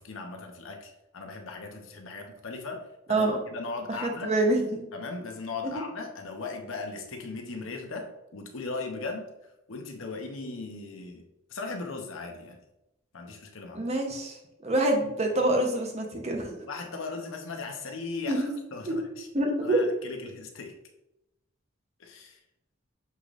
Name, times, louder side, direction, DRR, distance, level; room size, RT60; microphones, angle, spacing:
voice 1, 0.0-4.3 4.9-9.3 9.7-11.2 11.5-12.6 13.1-13.9 16.7-19.3 19.6-20.7 22.0-22.4, left 3 dB, 75° left, 3 dB, 0.8 m, -38 dB
voice 2, 4.0-4.8 13.7-14.4 14.6-16.6 18.3-18.5 18.9-19.0 19.3-19.8, right 1 dB, 35° right, 1 dB, 0.8 m, -26 dB
6.7 x 3.1 x 2.5 m, 0.90 s
head